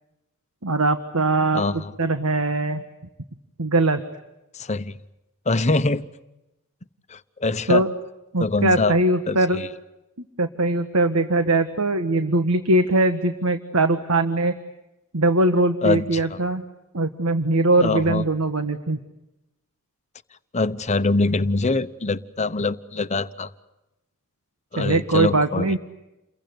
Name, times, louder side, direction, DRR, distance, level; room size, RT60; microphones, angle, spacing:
voice 1, 0.6-2.8 3.6-4.0 7.7-7.9 8.3-9.6 10.4-14.5 15.1-16.6 16.9-19.0 24.8-25.8, right 2 dB, 80° right, 8 dB, 1.5 m, -21 dB
voice 2, 1.5-1.9 4.5-5.0 5.5-6.1 7.1-7.8 8.4-8.9 9.3-9.7 15.8-16.4 17.8-18.2 20.5-23.5 24.7-25.8, left 3 dB, 30° left, 13 dB, 1.0 m, -24 dB
29.5 x 22.5 x 8.0 m, 0.95 s
head